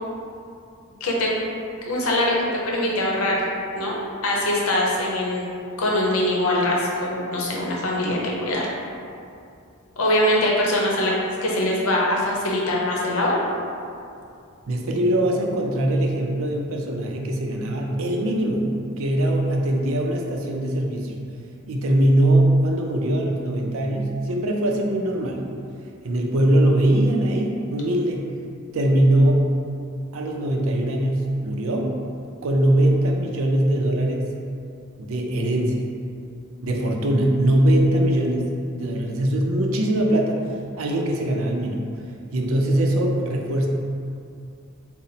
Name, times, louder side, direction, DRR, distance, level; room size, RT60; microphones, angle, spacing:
voice 1, 1.0-1.3 1.8-3.4 3.7-3.9 4.2-5.5 5.8-8.7 10.0-11.1 11.4-13.4, left 1 dB, 85° left, -3 dB, 0.7 m, -22 dB
voice 2, 14.7-18.7 19.0-21.2 21.7-25.4 26.0-28.3 28.7-29.5 30.1-31.9 32.4-34.3 35.0-35.8 36.6-38.5 38.8-40.4 40.8-41.8 42.3-43.7, right 1 dB, 75° right, 1 dB, 0.5 m, -21 dB
3.9 x 2.1 x 4.0 m, 2.5 s
head